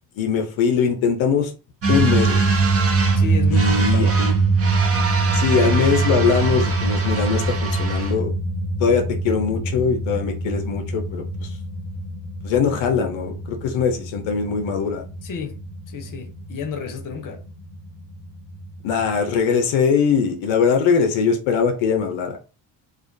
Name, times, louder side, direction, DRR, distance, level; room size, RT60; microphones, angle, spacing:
voice 1, 0.2-1.5 1.9-2.5 3.5-4.3 5.3-8.3 8.8-11.6 12.4-15.0 18.8-22.4, left 6 dB, 75° left, 0.7 m, -21 dB
sound 1, 1.8-19.3, right 3 dB, 30° right, 0.7 m, -23 dB
voice 2, 3.2-4.2 15.2-15.6 15.9-17.4, left 6 dB, 45° left, 0.7 m, -32 dB
2.5 x 2.2 x 2.5 m
supercardioid pair, 70°, 47 cm